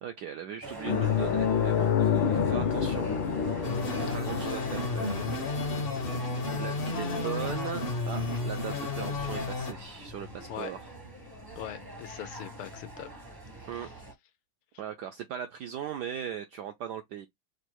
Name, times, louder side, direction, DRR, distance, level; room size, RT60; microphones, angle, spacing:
voice 1, 0.0-3.2 4.0-5.2 6.6-10.9 13.7-13.9 14.8-17.3, right 9 dB, 80° right, 0.9 m, -38 dB
sound 1, 0.6-14.1, right 2 dB, 25° right, 0.4 m, -44 dB
sound 2, 0.9-9.8 10.1-10.3 12.4-12.5, left 7 dB, 70° left, 1.4 m, -30 dB
sound 3, 3.6-9.7, left 2 dB, 50° left, 0.6 m, -32 dB
voice 2, 6.5-7.6 10.5-10.8 11.6-13.1 13.7-13.9, left 11 dB, 90° left, 1.7 m, -42 dB
5.1 x 2.1 x 4.5 m
omnidirectional pair, 2.3 m